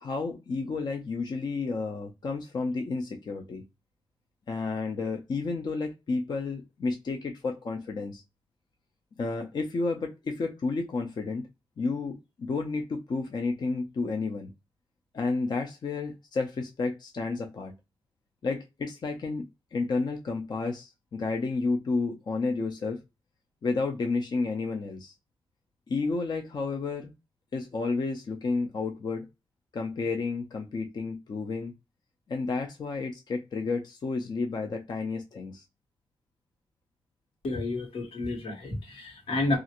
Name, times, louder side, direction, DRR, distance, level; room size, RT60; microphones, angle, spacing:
voice 1, 0.0-3.6 4.5-8.2 9.2-11.5 11.8-14.5 15.1-17.7 18.4-23.0 23.6-25.1 25.9-27.1 27.5-29.3 29.7-31.7 32.3-35.6, left 3 dB, 50° left, 0.4 m, -31 dB
voice 2, 37.4-39.6, left 2 dB, 85° left, 1.2 m, -30 dB
2.9 x 2.4 x 2.9 m
wide cardioid pair, 125°, 9 cm